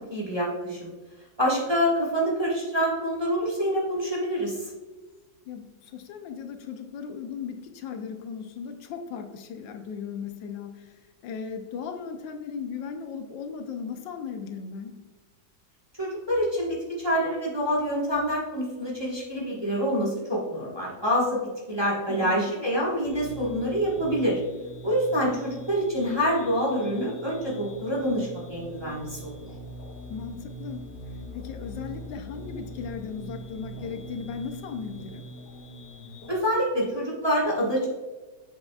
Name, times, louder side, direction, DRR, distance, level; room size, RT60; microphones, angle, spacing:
voice 1, 0.1-0.9 1.4-4.7 16.0-24.4 24.8-29.5 36.3-37.9, equal, 15° right, -5 dB, 1.2 m, -26 dB
voice 2, 5.4-15.0 22.1-22.5 30.1-35.3, left 6 dB, 85° left, 6 dB, 1.4 m, -37 dB
sound 1, 23.0-36.3, right 1 dB, 70° left, 1.4 m, -42 dB
7.7 x 6.0 x 2.3 m, 1.3 s
omnidirectional pair, 2.0 m